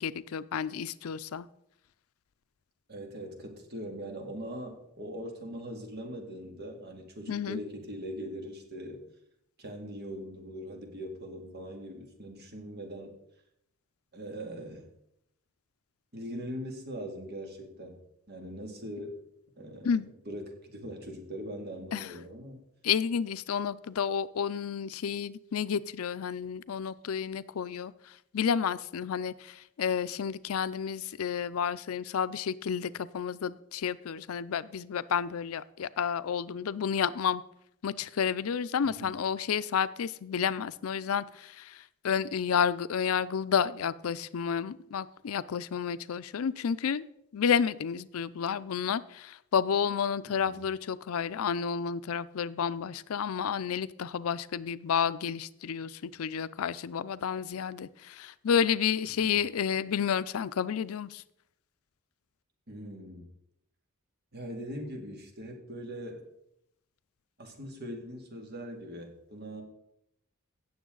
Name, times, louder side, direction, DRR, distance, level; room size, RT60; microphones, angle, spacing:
voice 1, 0.0-1.5 7.3-7.6 19.8-20.1 21.9-22.1 22.8-37.4 37.8-47.1 47.3-61.2, left 7 dB, 85° left, 16 dB, 0.5 m, -31 dB
voice 2, 2.9-9.0 9.6-13.1 14.1-14.9 16.1-18.0 18.3-19.2 19.6-19.9 20.3-22.6 38.8-39.1 50.3-50.6 59.2-59.4 62.7-63.3 64.3-66.2 67.4-69.6, equal, 50° right, 3 dB, 2.3 m, -41 dB
16.5 x 7.0 x 3.9 m, 0.78 s
head